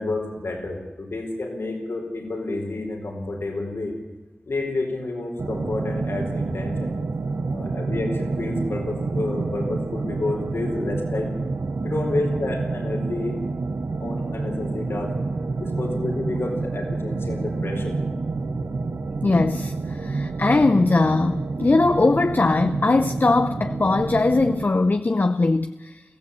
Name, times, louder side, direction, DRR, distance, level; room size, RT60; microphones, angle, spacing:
voice 1, 0.0-4.0 4.5-6.9 7.5-11.3 11.8-13.4 14.0-15.2 15.6-18.0, left 2 dB, 85° left, 4.4 m, -29 dB
sound 1, 5.4-24.6, right 3 dB, 85° right, 1.2 m, -28 dB
voice 2, 19.2-26.0, left 3 dB, 55° left, 0.7 m, -20 dB
22.5 x 15.0 x 8.5 m
cardioid pair, 40°, 4 cm